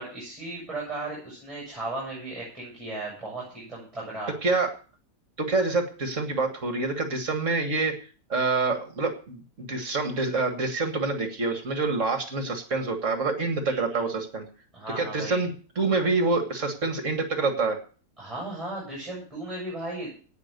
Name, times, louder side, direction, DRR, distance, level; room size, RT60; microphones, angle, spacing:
voice 1, 0.0-4.3 13.6-14.1 14.7-15.4 18.2-20.1, right 2 dB, 20° right, -5 dB, 7.3 m, -36 dB
voice 2, 5.4-7.9 8.3-14.5 15.0-17.8, right 3 dB, 50° right, 6 dB, 2.1 m, -26 dB
17.5 x 6.0 x 6.7 m, 0.40 s
omnidirectional pair, 1.7 m